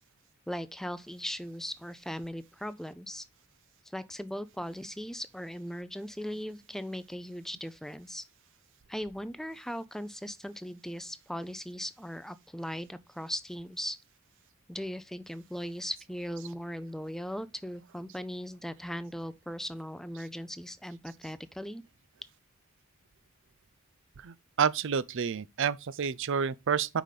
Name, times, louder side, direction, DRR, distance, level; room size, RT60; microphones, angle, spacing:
voice 1, 0.5-3.2 3.9-8.2 8.9-14.0 14.7-21.8, equal, ahead, 0.4 m, -38 dB
voice 2, 24.2-27.0, right 6 dB, 60° right, 0.5 m, -29 dB
5.2 x 5.0 x 5.7 m
head